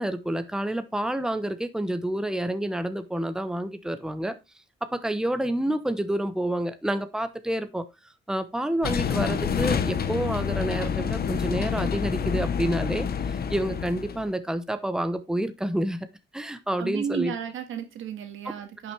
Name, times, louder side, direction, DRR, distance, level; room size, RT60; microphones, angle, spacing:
voice 1, 0.0-4.3 4.9-7.9 8.3-16.1 16.3-17.3, right 1 dB, 5° right, 1.0 m, -28 dB
sound 1, 8.8-14.3, left 7 dB, 50° left, 1.0 m, -28 dB
voice 2, 16.8-18.9, right 8 dB, 85° right, 1.9 m, -33 dB
10.5 x 6.2 x 3.3 m
cardioid pair, 120°, 20 cm